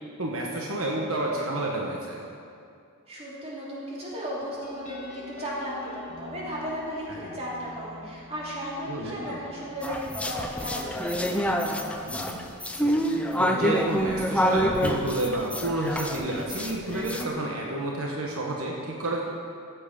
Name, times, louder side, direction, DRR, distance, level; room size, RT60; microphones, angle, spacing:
voice 1, 0.2-2.2 7.1-7.3 8.9-9.4 12.0-12.5 12.7-12.9 13.4-19.2, right 1 dB, 75° right, -2 dB, 1.3 m, -30 dB
voice 2, 3.1-11.4, equal, 30° right, -6 dB, 2.9 m, -35 dB
sound 1, 4.6-11.8, left 3 dB, 35° left, 1.7 m, -45 dB
sound 2, 9.8-17.2, equal, 5° left, 0.6 m, -27 dB
14.0 x 7.7 x 5.3 m, 2.5 s
head